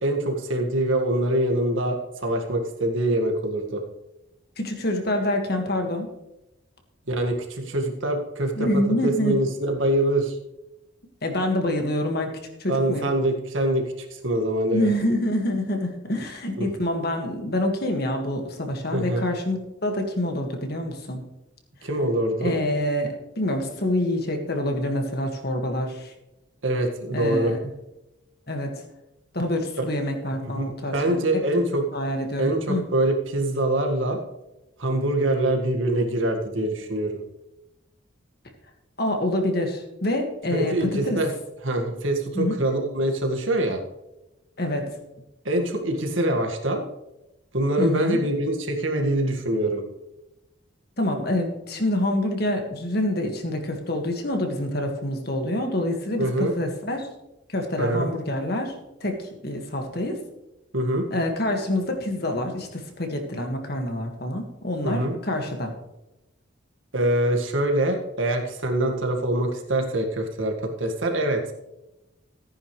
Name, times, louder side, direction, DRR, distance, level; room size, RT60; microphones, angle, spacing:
voice 1, 0.0-3.8 7.1-10.4 12.7-14.9 16.6-16.7 18.9-19.2 21.8-22.6 26.6-27.5 29.8-29.9 30.5-31.8 32.4-34.2 34.8-37.2 40.5-41.3 41.6-43.8 45.5-46.8 47.5-49.8 56.2-56.5 57.8-58.1 60.7-61.1 64.8-65.1 66.9-71.4, right 1 dB, 80° right, 3 dB, 1.9 m, -24 dB
voice 2, 4.6-6.1 8.6-9.4 11.2-12.3 12.6-13.1 14.7-21.3 22.4-26.1 27.1-27.6 28.5-28.8 29.3-31.2 31.9-32.8 39.0-41.2 42.3-42.6 44.6-45.0 47.8-48.2 51.0-57.1 57.5-58.7 59.0-60.2 61.1-65.7, left 1 dB, 50° left, 4 dB, 1.9 m, -26 dB
14.5 x 9.7 x 3.3 m, 0.94 s
head